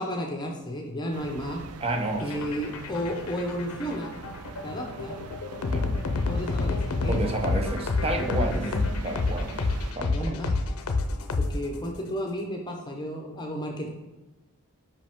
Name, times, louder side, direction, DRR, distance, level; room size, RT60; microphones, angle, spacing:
voice 1, 0.0-1.6 2.2-4.1 4.6-5.2 6.2-7.2 8.5-8.6 10.1-10.6 11.4-13.9, equal, 20° left, 1 dB, 0.6 m, -33 dB
sound 1, 1.1-9.9, right 4 dB, 80° right, 0.4 m, -42 dB
voice 2, 1.8-2.7 5.7-5.9 7.1-9.5 9.9-10.4, right 2 dB, 25° right, 4 dB, 0.7 m, -31 dB
sound 2, 2.2-12.0, left 3 dB, 75° left, 0.6 m, -28 dB
5.2 x 5.1 x 3.5 m, 1.1 s
head